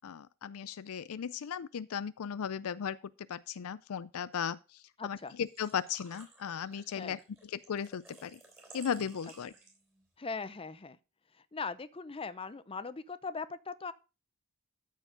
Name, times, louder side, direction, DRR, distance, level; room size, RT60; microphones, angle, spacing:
voice 1, 0.0-3.0 3.3-4.6 5.0-8.4 8.7-9.5, left 7 dB, 70° left, 0.4 m, -36 dB
voice 2, 5.0-5.3 7.0-7.2 10.2-11.0 11.5-13.9, left 4 dB, 25° left, 0.6 m, -40 dB
Engine / Trickle dribble / Fill (with liquid), 5.2-10.0, right 2 dB, 10° right, 3.6 m, -56 dB
13.5 x 4.7 x 5.1 m
head